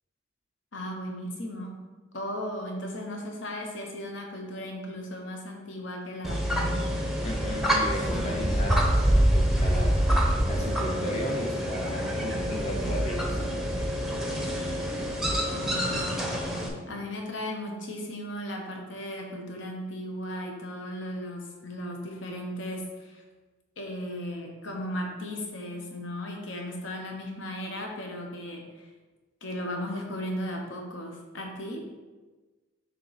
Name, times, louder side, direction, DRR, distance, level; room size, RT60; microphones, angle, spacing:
voice 1, 0.7-1.7 2.1-6.9 15.5-16.3 16.9-23.2 23.8-28.9 29.4-31.8, equal, 65° left, 1 dB, 1.0 m, -36 dB
sound 1, 6.2-16.7, equal, ahead, 0.7 m, -26 dB
voice 2, 7.2-9.9 10.5-13.5, equal, 30° left, -1 dB, 0.7 m, -35 dB
6.7 x 2.9 x 4.9 m, 1.3 s
head